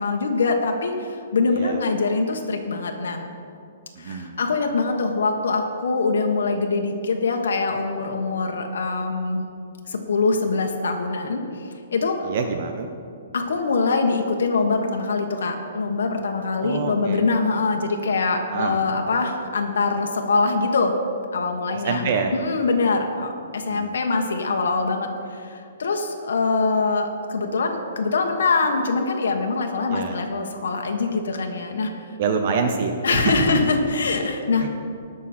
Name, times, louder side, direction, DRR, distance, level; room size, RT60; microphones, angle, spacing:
voice 1, 0.0-3.2 4.0-9.4 9.9-12.3 13.3-20.9 21.3-31.9 33.0-34.7, left 3 dB, 90° left, 3 dB, 1.3 m, -23 dB
voice 2, 4.0-4.4 12.2-12.9 16.6-17.2 18.5-18.8 21.7-22.3 23.7-24.0 29.9-30.2 32.2-33.7 34.6-34.7, right 5 dB, 40° right, 5 dB, 0.7 m, -26 dB
18.5 x 6.3 x 4.4 m, 2.5 s
hypercardioid pair, 175°, 0 cm